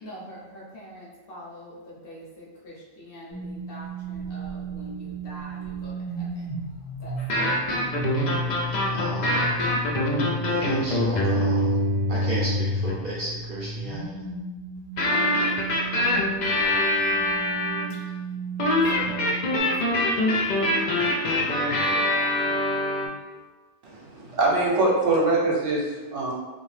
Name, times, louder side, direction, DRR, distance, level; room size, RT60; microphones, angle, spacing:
voice 1, 0.0-6.5 7.0-7.7 18.7-20.1 20.5-21.3 21.9-22.6, equal, 55° left, -6 dB, 0.8 m, -44 dB
sound 1, 3.3-16.4 16.9-19.6, right 2 dB, 5° right, 0.5 m, -34 dB
sound 2, 7.2-13.0 15.0-17.9 18.6-23.1, left 1 dB, 85° left, 0.4 m, -24 dB
voice 2, 8.9-9.5 10.4-11.8 12.1-14.3, right 2 dB, 55° right, -7 dB, 0.6 m, -34 dB
voice 3, 23.8-26.3, right 2 dB, 70° right, -3 dB, 1.0 m, -23 dB
2.7 x 2.3 x 3.1 m, 1.3 s
omnidirectional pair, 1.3 m